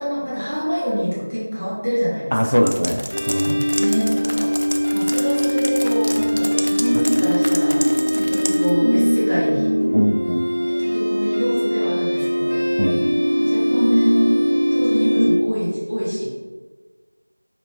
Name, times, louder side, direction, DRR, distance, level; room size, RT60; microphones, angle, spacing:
voice 1, 0.0-2.6 3.8-4.5 4.9-9.7 10.6-12.7 13.4-14.2 14.7-16.3, equal, 35° right, -7 dB, 0.7 m, -25 dB
voice 2, 2.3-3.7 6.9-7.0 9.9-10.4 12.8-13.1, equal, 75° left, 6 dB, 0.3 m, -21 dB
sound 1, 2.6-8.7, equal, 55° right, 0.3 m, -30 dB
sound 2, 3.1-15.3, equal, 35° left, 0.8 m, -20 dB
3.0 x 2.9 x 3.3 m, 1.4 s
figure-of-eight pair, 180°, 0 cm